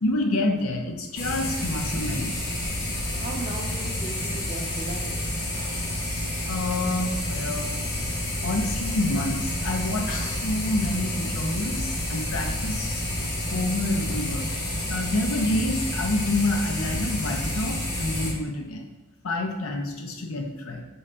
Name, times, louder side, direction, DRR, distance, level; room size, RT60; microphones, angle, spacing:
voice 1, 0.0-2.4 6.5-7.8 8.4-13.0 13.5-14.5 14.9-18.8 19.2-20.8, left 2 dB, 80° left, 3 dB, 0.6 m, -28 dB
sound 1, 1.2-18.3, left 1 dB, 50° left, 1.1 m, -29 dB
voice 2, 3.2-5.2, right 2 dB, 30° right, -1 dB, 0.5 m, -37 dB
3.9 x 3.8 x 3.3 m, 1.1 s
head